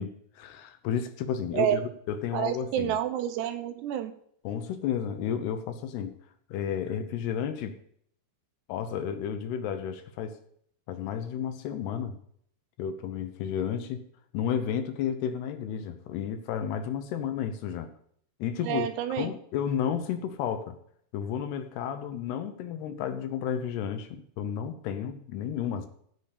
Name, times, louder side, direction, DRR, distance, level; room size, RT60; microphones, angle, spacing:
voice 1, 0.0-3.0 4.4-6.2 6.5-7.8 8.7-10.4 10.9-12.2 12.8-14.1 14.3-17.9 18.4-18.9 19.2-20.8 21.1-25.9, left 8 dB, 75° left, 8 dB, 2.8 m, -32 dB
voice 2, 2.3-4.1 18.6-19.3, right 11 dB, 75° right, 9 dB, 2.9 m, -29 dB
16.0 x 5.7 x 6.7 m, 0.66 s
omnidirectional pair, 5.2 m